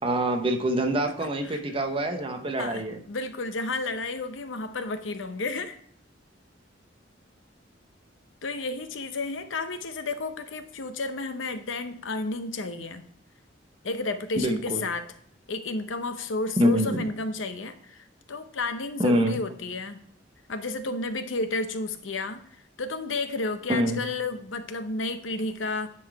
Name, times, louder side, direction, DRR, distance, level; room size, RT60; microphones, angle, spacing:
voice 1, 0.0-3.0 14.4-14.8 16.6-17.0 19.0-19.4 23.7-24.0, equal, 30° right, 5 dB, 0.9 m, -25 dB
voice 2, 1.0-1.6 2.6-5.8 8.4-13.0 13.8-15.1 15.5-20.0 20.5-22.4 22.8-25.9, left 3 dB, 85° left, 9 dB, 0.7 m, -32 dB
9.9 x 4.0 x 4.7 m, 0.62 s
head